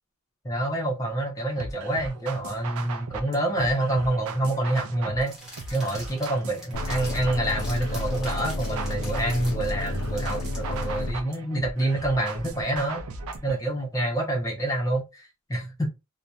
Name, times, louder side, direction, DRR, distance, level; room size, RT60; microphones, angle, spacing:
voice 1, 0.4-5.3 5.7-13.0 13.4-15.9, right 1 dB, 15° left, 0.6 m, -27 dB
sound 1, 1.6-13.6, right 4 dB, 80° right, 0.4 m, -38 dB
sound 2, 5.2-10.8, equal, 5° right, 0.9 m, -44 dB
sound 3, 6.7-11.1, left 2 dB, 80° left, 0.4 m, -31 dB
2.6 x 2.1 x 2.2 m
head